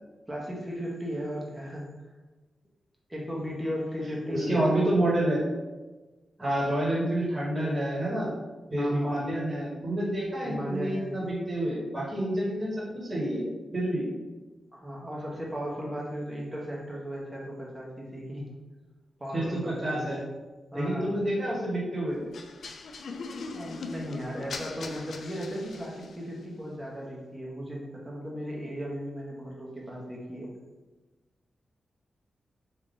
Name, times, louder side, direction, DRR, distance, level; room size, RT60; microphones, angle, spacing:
voice 1, 0.3-1.9 3.1-4.8 6.4-6.7 8.8-9.2 10.4-11.2 14.7-18.5 19.2-20.2 20.7-21.1 23.5-30.5, equal, 10° right, -4 dB, 1.0 m, -36 dB
voice 2, 4.3-5.4 6.4-8.3 8.7-13.4 13.7-14.0 19.3-20.2 20.7-22.2, right 1 dB, 25° right, -8 dB, 1.4 m, -28 dB
sound 1, 22.3-26.3, left 4 dB, 70° left, 0.3 m, -40 dB
3.6 x 2.8 x 3.7 m, 1.2 s
wide cardioid pair, 110°, 0 cm